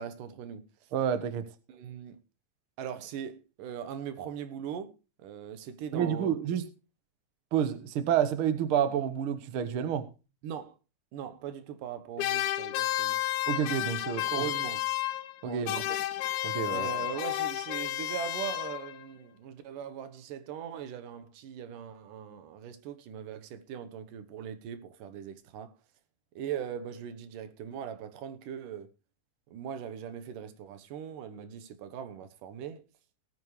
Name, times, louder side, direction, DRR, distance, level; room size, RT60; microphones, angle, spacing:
voice 1, 0.0-0.9 1.7-2.2 2.8-4.9 5.2-6.3 10.4-10.8 11.1-13.2 14.3-14.9 15.4-15.8 16.7-25.8 26.4-28.9 29.5-32.8, right 8 dB, 85° right, 2.8 m, -40 dB
voice 2, 0.9-1.5 5.9-6.6 7.5-10.1 13.5-14.4 15.4-16.0 16.4-16.9, right 9 dB, 55° right, 1.7 m, -29 dB
sound 1, 12.2-15.4 15.7-19.1, left 14 dB, 75° left, 2.1 m, -32 dB
18.5 x 9.3 x 3.2 m
omnidirectional pair, 3.6 m